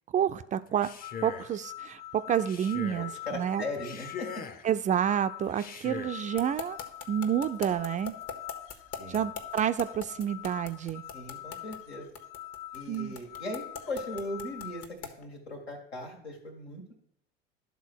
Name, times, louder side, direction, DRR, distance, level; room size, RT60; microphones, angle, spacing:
voice 1, 0.1-0.9 1.2-3.6 4.6-6.8 7.1-8.1 9.1-11.0 12.9-13.2, right 9 dB, 25° right, 11 dB, 0.3 m, -29 dB
Male speech man speaking, 0.7-1.6 2.4-3.1 3.7-4.7 5.5-6.2, left 6 dB, 30° left, 0.7 m, -42 dB
sound 1, 1.0-14.9, left 13 dB, 70° left, 0.5 m, -45 dB
voice 2, 3.0-4.4 9.0-9.3 11.1-12.1 12.7-16.9, left 1 dB, 85° left, 1 dB, 2.1 m, -39 dB
sound 2, 6.4-15.2, left 6 dB, 50° left, 1.3 m, -40 dB
11.5 x 3.9 x 6.3 m, 0.72 s
hypercardioid pair, 80°, 31 cm